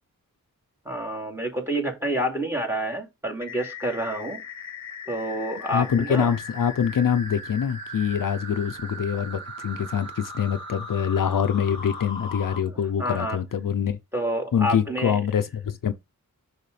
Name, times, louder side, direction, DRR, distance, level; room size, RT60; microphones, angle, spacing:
voice 1, 0.8-4.4 5.1-6.3 12.7-13.4 14.1-15.2, right 1 dB, 5° right, 2.5 m, -28 dB
sound 1, 3.4-12.6, left 2 dB, 15° left, 2.2 m, -38 dB
voice 2, 5.7-14.0 14.5-15.9, left 8 dB, 65° left, 0.6 m, -25 dB
6.7 x 6.5 x 3.3 m
wide cardioid pair, 100°, 35 cm